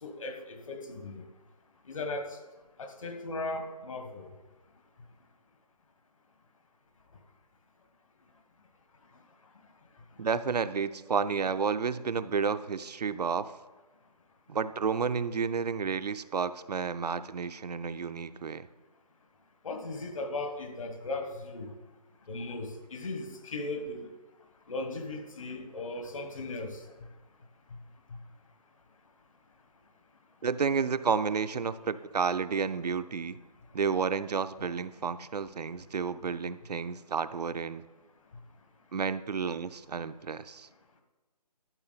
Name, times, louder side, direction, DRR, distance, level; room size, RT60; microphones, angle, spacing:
voice 1, 0.0-1.2 1.9-2.3 2.8-4.3 19.6-21.7 22.3-24.1 24.7-26.8, left 2 dB, 55° left, 6 dB, 1.4 m, -37 dB
voice 2, 10.2-13.5 14.5-18.7 30.4-33.4 33.7-37.8 38.9-40.7, right 5 dB, 75° right, 13 dB, 0.5 m, -31 dB
12.0 x 7.2 x 4.0 m, 1.2 s
figure-of-eight pair, 160°, 21 cm